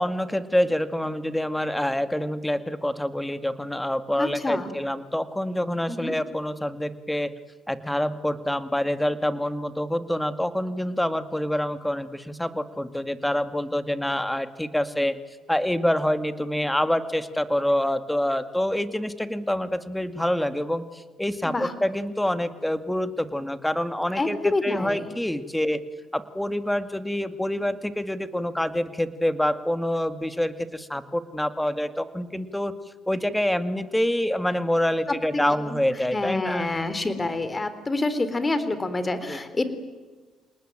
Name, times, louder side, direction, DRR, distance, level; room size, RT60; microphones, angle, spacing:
voice 1, 0.0-7.3 7.7-15.2 15.5-25.8 26.1-32.7 33.1-36.7 39.3-39.4, left 1 dB, 5° left, 11 dB, 2.1 m, -26 dB
voice 2, 4.2-4.7 5.9-6.1 21.4-21.7 24.2-25.1 35.3-35.8 36.1-39.6, left 2 dB, 25° left, 12 dB, 3.7 m, -27 dB
27.0 x 19.5 x 9.0 m, 1.4 s
supercardioid pair, 65°, 0 cm